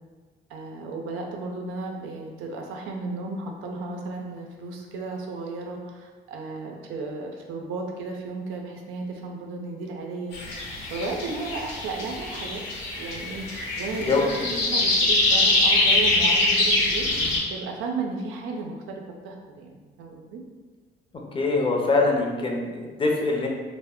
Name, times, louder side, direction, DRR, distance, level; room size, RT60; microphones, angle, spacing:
voice 1, 0.5-10.4 10.9-12.6 13.0-14.4 14.7-17.1 17.5-20.4, right 3 dB, 90° right, 1 dB, 0.5 m, -34 dB
sound 1, 10.3-17.4, left 2 dB, 80° left, 0.8 m, -23 dB
voice 2, 14.1-14.6 21.3-23.5, left 3 dB, 25° left, 0 dB, 0.5 m, -23 dB
2.2 x 2.0 x 3.5 m, 1.4 s
cardioid pair, 90°, 20 cm